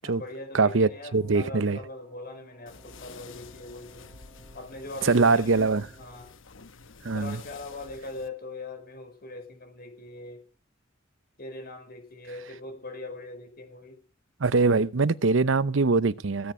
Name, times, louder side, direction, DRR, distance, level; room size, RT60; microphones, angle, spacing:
voice 1, 0.0-4.1 4.5-5.7 6.0-6.3 7.1-10.4 11.4-14.0, left 2 dB, 50° left, 5.4 m, -41 dB
Wind instrument woodwind instrument, 0.5-6.3, right 4 dB, 15° right, 2.2 m, -58 dB
voice 2, 0.5-1.8 5.0-5.9 7.0-7.4 14.4-16.5, right 4 dB, 75° right, 0.8 m, -23 dB
sound 1, 2.7-8.3, left 5 dB, 75° left, 1.1 m, -49 dB
17.0 x 9.6 x 6.3 m
head